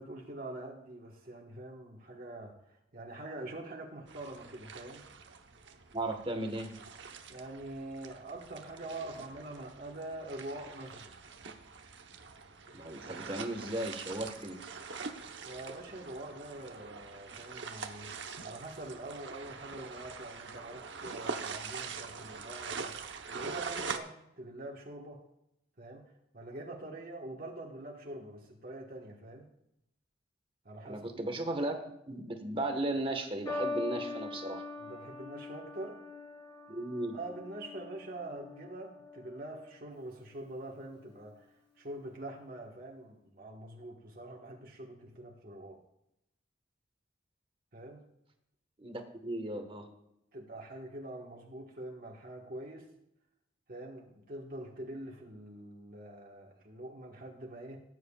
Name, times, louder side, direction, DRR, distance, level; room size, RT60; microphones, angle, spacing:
voice 1, 0.0-5.0 7.3-11.1 15.4-23.0 23.3-25.2 25.8-26.0 26.3-29.5 30.6-31.0 34.8-36.0 37.1-41.5 41.8-45.8 47.7-48.0 50.3-52.9 53.7-57.8, right 1 dB, 50° right, -1 dB, 1.4 m, -45 dB
sound 1, 4.1-24.0, right 5 dB, 65° right, 0.9 m, -44 dB
voice 2, 5.9-6.7 12.7-14.6 30.8-31.8 32.1-34.6 36.7-37.2 48.8-49.9, right 1 dB, 25° right, 5 dB, 1.3 m, -36 dB
sound 2, 33.5-40.0 40.8-41.2, left 3 dB, 25° left, 3.2 m, -42 dB
18.5 x 9.3 x 2.4 m, 0.81 s
head